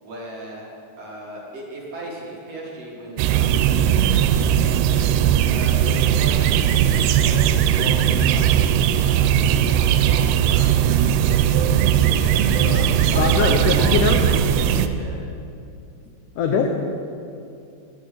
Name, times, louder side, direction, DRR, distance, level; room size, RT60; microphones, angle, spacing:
voice 1, 0.0-0.7 1.0-4.4 5.5-11.4 13.1-15.2, right 1 dB, 50° right, -4 dB, 2.3 m, -36 dB
sound 1, 3.2-14.9, right 9 dB, 90° right, 2.6 m, -18 dB
voice 2, 12.6-12.9 13.1-14.2 16.4-16.7, left 6 dB, 80° left, 3 dB, 1.8 m, -22 dB
18.0 x 6.3 x 6.7 m, 2.5 s
omnidirectional pair, 4.5 m